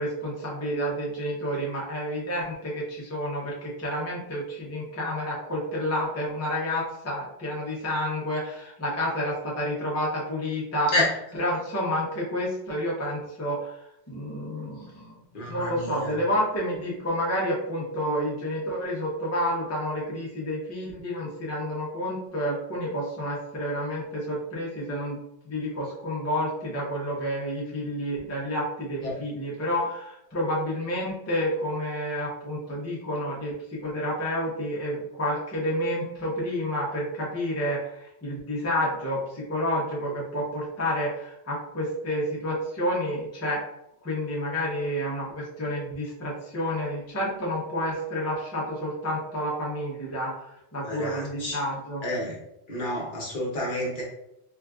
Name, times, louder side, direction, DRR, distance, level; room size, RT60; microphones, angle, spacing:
voice 1, 0.0-11.0 11.3-15.2 15.5-25.2 25.5-33.5 33.8-43.6 44.0-50.5 50.7-52.0, equal, 20° left, -4 dB, 0.5 m, -29 dB
voice 2, 15.3-16.1 29.0-29.1 50.8-51.6 52.0-52.4 52.7-54.0, left 2 dB, 50° left, -3 dB, 0.9 m, -29 dB
3.7 x 2.4 x 2.3 m, 0.82 s
omnidirectional pair, 1.1 m